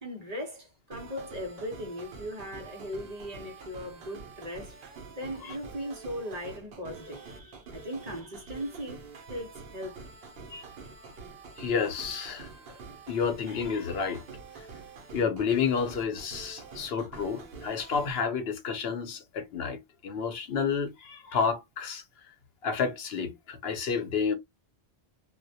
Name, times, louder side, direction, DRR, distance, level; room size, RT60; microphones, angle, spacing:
voice 1, 0.0-4.8 5.1-10.1, equal, 45° right, 0.7 m, -38 dB
sound 1, 0.9-18.2, right 4 dB, 75° right, 0.8 m, -47 dB
voice 2, 11.6-12.5 13.1-14.2 15.1-22.0 22.6-24.3, left 6 dB, 75° left, 0.9 m, -30 dB
2.2 x 2.1 x 2.6 m
omnidirectional pair, 1.0 m